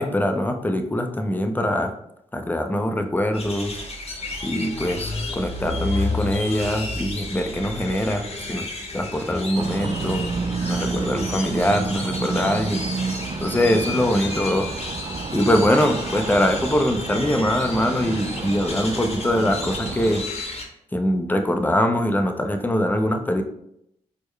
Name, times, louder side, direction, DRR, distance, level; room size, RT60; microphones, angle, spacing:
voice 1, 0.0-1.9 2.3-3.8 4.4-8.7 8.9-10.2 10.7-12.8 13.4-14.7 15.3-20.2 20.9-23.4, left 1 dB, 15° left, 5 dB, 0.6 m, -23 dB
sound 1, 3.3-20.6, left 3 dB, 45° left, 0.9 m, -32 dB
sound 2, 9.5-20.2, right 4 dB, 35° right, 0.4 m, -30 dB
4.4 x 2.1 x 3.2 m, 0.77 s
supercardioid pair, 45°, 14 cm